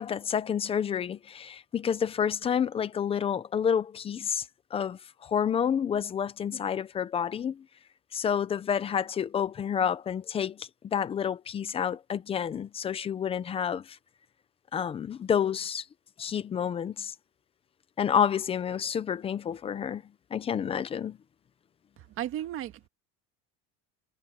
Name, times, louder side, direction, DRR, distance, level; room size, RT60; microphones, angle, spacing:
voice 1, 0.0-4.5 4.7-7.6 8.1-14.0 14.7-15.8 16.2-17.1 18.0-20.0 20.3-21.2, left 8 dB, 15° left, 0.5 m, -29 dB
voice 2, 22.0-22.9, right 12 dB, 40° right, 1.8 m, -35 dB
cardioid pair, 175°, 34 cm